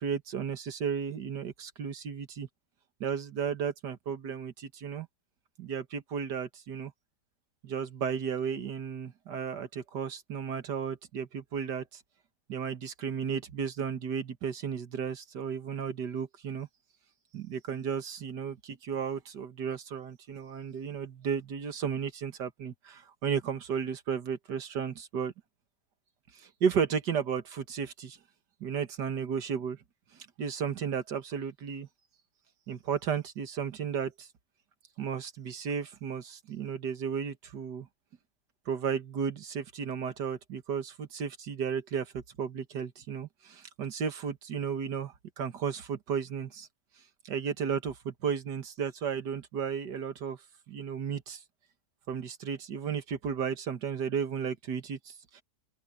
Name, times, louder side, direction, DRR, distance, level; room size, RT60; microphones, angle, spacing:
voice 1, 0.0-2.5 3.0-5.1 5.6-6.9 7.6-12.0 12.5-16.7 17.3-25.3 26.3-28.2 28.6-29.8 30.4-31.9 32.7-34.3 35.0-37.9 38.7-46.7 47.2-50.4 50.7-51.4 52.1-55.4, right 7 dB, 85° right, 2.2 m, -34 dB
open air
omnidirectional pair, 1.8 m